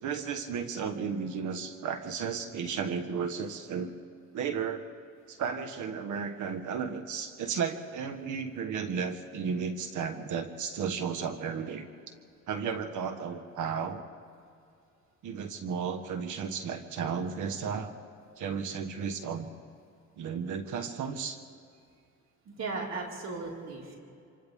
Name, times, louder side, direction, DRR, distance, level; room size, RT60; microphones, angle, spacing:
voice 1, 0.0-3.9 4.3-4.9 5.3-11.8 12.5-14.0 15.2-17.9 18.4-19.5 20.2-21.4, right 6 dB, 80° right, 8 dB, 1.4 m, -34 dB
voice 2, 22.5-23.9, right 3 dB, 60° right, -2 dB, 4.8 m, -36 dB
27.5 x 26.5 x 3.6 m, 2.4 s
cardioid pair, 90°, 30 cm